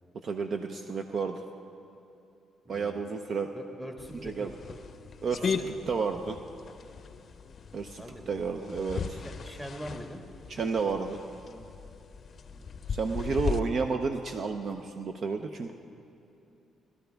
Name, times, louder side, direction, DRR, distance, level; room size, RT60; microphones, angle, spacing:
voice 1, 0.2-1.4 2.7-3.5 4.2-4.5 5.2-5.6 5.9-6.4 7.7-9.2 10.5-11.2 12.9-15.7, right 5 dB, 50° right, 6 dB, 0.6 m, -31 dB
voice 2, 2.6-3.0 3.5-4.8 5.4-5.8 8.0-8.3 9.1-10.2 12.4-12.8, equal, 10° right, 3 dB, 1.5 m, -43 dB
sound 1, 4.0-13.6, left 5 dB, 50° left, 0.6 m, -38 dB
20.0 x 12.0 x 3.4 m, 2.8 s
cardioid pair, 90°, 0 cm